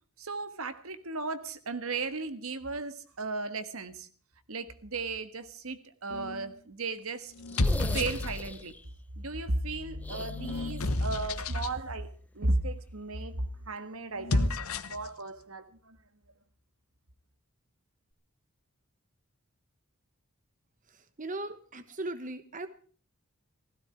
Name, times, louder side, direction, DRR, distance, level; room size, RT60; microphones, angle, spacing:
voice 1, 0.2-4.1 4.5-7.3 7.9-8.8 9.2-13.4 13.7-14.6 14.9-16.0, right 3 dB, 75° right, 1.5 m, -35 dB
sound 1, 6.1-6.5 7.3-8.7 9.4-11.8 14.1-15.1, left 2 dB, 80° left, 1.2 m, -31 dB
sound 2, 7.5-8.9 10.0-11.2 11.4-11.5 13.2-13.3, left 1 dB, 5° left, 0.7 m, -43 dB
voice 2, 20.9-22.7, right 2 dB, 35° right, 1.2 m, -38 dB
16.5 x 16.0 x 4.6 m
head